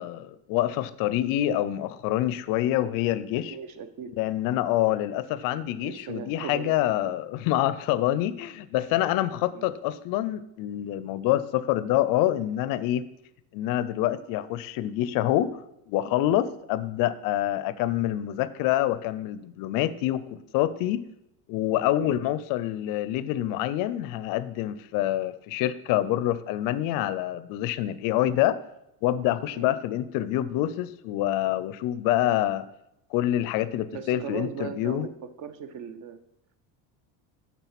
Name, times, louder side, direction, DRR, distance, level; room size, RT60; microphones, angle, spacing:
voice 1, 0.0-3.6 4.2-13.0 13.5-15.5 15.9-20.2 20.5-21.0 21.5-28.6 29.0-32.6 33.1-35.1, left 13 dB, 55° left, 15 dB, 0.4 m, -26 dB
voice 2, 3.5-4.1 5.8-6.7 7.0-7.1 9.5-9.7 22.0-22.2 29.5-29.8 33.9-35.1 35.4-36.2, right 7 dB, 45° right, 11 dB, 0.7 m, -38 dB
8.3 x 3.7 x 5.8 m, 0.82 s
cardioid pair, 140°, 42 cm